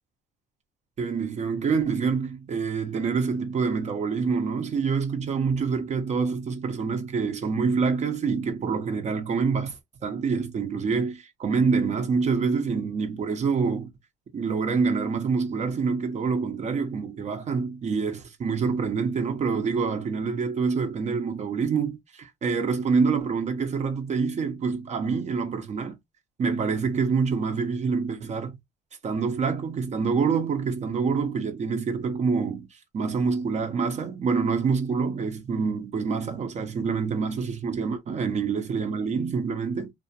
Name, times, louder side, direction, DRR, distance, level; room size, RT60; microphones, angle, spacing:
voice 1, 1.0-9.8 10.0-13.9 14.3-26.0 26.4-28.6 29.0-32.7 32.9-39.9, right 5 dB, 45° right, 0.9 m, -26 dB
2.5 x 2.4 x 2.8 m
cardioid pair, 110°, 17 cm